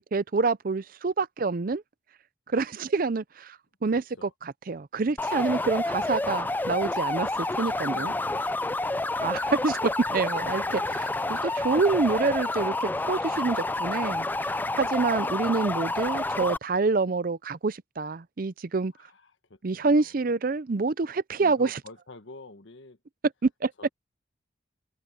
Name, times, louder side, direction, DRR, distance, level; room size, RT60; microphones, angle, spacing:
voice 1, 0.0-1.8 2.5-8.1 9.2-18.9 19.6-21.8 23.4-23.7, right 4 dB, 45° right, 0.5 m, -27 dB
voice 2, 3.9-4.3 5.4-5.7 7.9-9.0 10.1-10.3 10.7-11.2 19.0-20.2 21.4-23.0 23.8-23.9, left 3 dB, 75° left, 1.4 m, -49 dB
sound 1, 5.2-16.6, left 2 dB, 10° left, 0.3 m, -29 dB
head